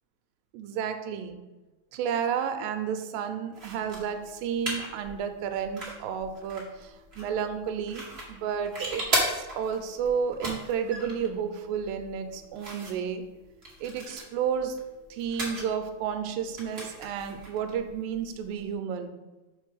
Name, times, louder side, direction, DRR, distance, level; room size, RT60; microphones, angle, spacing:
voice 1, 0.5-1.4 1.9-13.2 13.8-14.8 15.1-19.2, right 7 dB, 85° right, 7 dB, 2.4 m, -32 dB
sound 1, 3.5-18.7, right 1 dB, 40° right, 0.8 m, -37 dB
6.0 x 4.5 x 5.5 m, 1.1 s
omnidirectional pair, 4.0 m